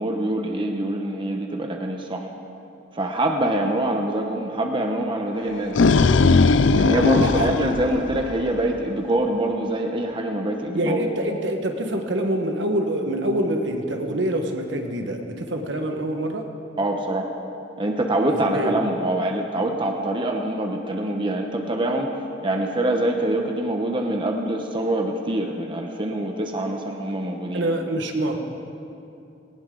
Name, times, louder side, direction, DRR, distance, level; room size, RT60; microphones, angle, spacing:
voice 1, 0.0-2.3 2.9-5.8 6.7-11.0 16.8-17.3 17.8-22.1 22.4-27.6, right 1 dB, 25° right, 2 dB, 0.9 m, -24 dB
sound 1, 5.4-8.7, left 3 dB, 70° left, 0.5 m, -18 dB
voice 2, 7.2-7.5 10.7-16.4 18.5-18.7 27.5-28.4, right 1 dB, 65° right, 4 dB, 1.5 m, -25 dB
19.0 x 18.5 x 3.9 m, 2.7 s
head